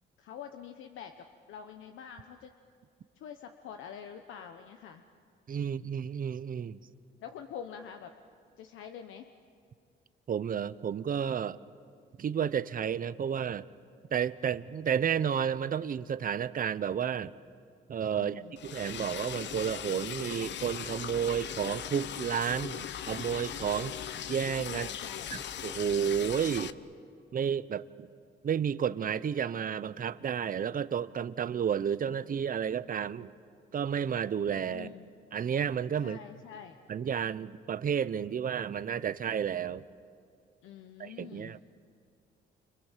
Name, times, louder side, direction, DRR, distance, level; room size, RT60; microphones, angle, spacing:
voice 1, 0.2-2.5 3.2-5.0 5.6-5.9 7.2-8.1 8.6-9.3 18.1-18.6 24.7-25.3 34.7-35.1 36.0-36.8 40.6-41.6, left 8 dB, 85° left, 6 dB, 1.1 m, -46 dB
voice 2, 5.5-6.8 10.3-11.6 12.2-13.7 14.1-17.3 17.9-24.9 25.3-26.7 27.3-28.1 28.4-33.3 33.7-34.9 35.3-36.2 36.9-39.8 41.0-41.6, right 8 dB, 45° right, 15 dB, 0.8 m, -31 dB
Liquid, 18.6-26.7, left 10 dB, 65° left, 0.9 m, -39 dB
29.5 x 26.5 x 7.5 m, 2.3 s
cardioid pair, 90°, 20 cm